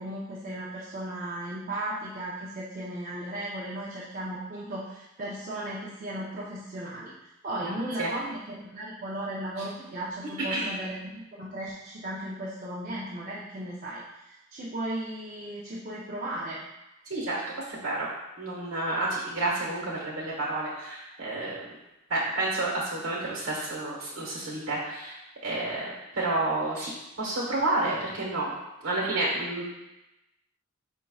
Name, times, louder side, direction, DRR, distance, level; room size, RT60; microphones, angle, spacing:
voice 1, 0.0-7.1 7.4-16.6, right 1 dB, 40° right, -6 dB, 0.6 m, -36 dB
voice 2, 7.6-8.1 10.5-10.7 17.1-17.4 17.7-18.1 18.4-21.6 22.1-25.2 25.4-26.9 27.2-28.5 28.8-29.6, right 2 dB, 65° right, -4 dB, 1.3 m, -30 dB
5.2 x 4.5 x 2.3 m, 0.95 s
head